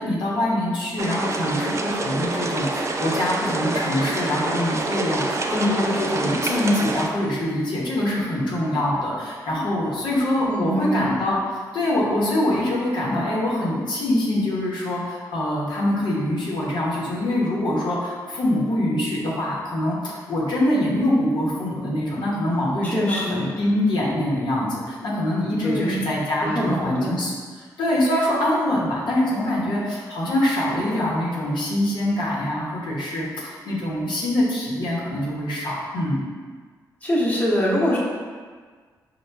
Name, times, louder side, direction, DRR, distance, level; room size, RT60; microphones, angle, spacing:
voice 1, 0.0-11.4 11.7-27.3 27.8-36.2, left 1 dB, 75° left, -5 dB, 0.9 m, -24 dB
sound 1, 1.0-7.1, right 2 dB, 40° right, 0.4 m, -26 dB
voice 2, 10.4-11.1 22.8-23.5 25.6-26.1 26.4-27.1 37.0-38.0, equal, 20° left, -5 dB, 1.0 m, -24 dB
4.6 x 2.2 x 3.3 m, 1.6 s
cardioid pair, 60°, 8 cm